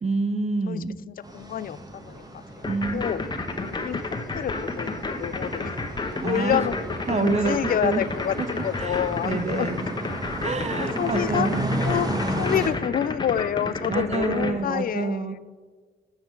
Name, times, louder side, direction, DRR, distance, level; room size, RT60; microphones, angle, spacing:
voice 1, 0.0-1.0 2.7-3.0 6.2-6.6 7.1-8.0 8.4-8.5 8.8-9.9 10.4-11.9 13.9-15.4, right 3 dB, 35° right, 9 dB, 0.9 m, -27 dB
voice 2, 0.7-2.6 2.9-3.2 3.6-4.0 4.3-5.7 6.2-6.7 7.0-9.7 10.8-11.5 11.8-15.4, left 10 dB, 50° left, 17 dB, 0.4 m, -28 dB
sound 1, 1.2-12.7, right 1 dB, 20° right, 1.4 m, -34 dB
sound 2, 2.6-14.5, left 3 dB, 25° left, 1.0 m, -30 dB
7.7 x 5.6 x 4.5 m, 1.5 s
cardioid pair, 70°, 19 cm